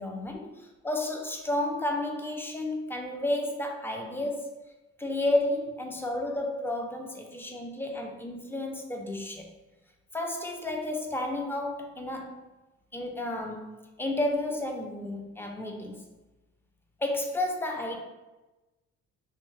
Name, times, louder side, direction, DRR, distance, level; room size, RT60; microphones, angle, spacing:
voice 1, 0.0-4.6 5.0-9.5 10.1-12.4 12.9-13.7 14.0-16.0 17.0-18.0, left 1 dB, 10° left, 2 dB, 0.4 m, -31 dB
2.7 x 2.2 x 3.1 m, 1.1 s
cardioid pair, 90°, 30 cm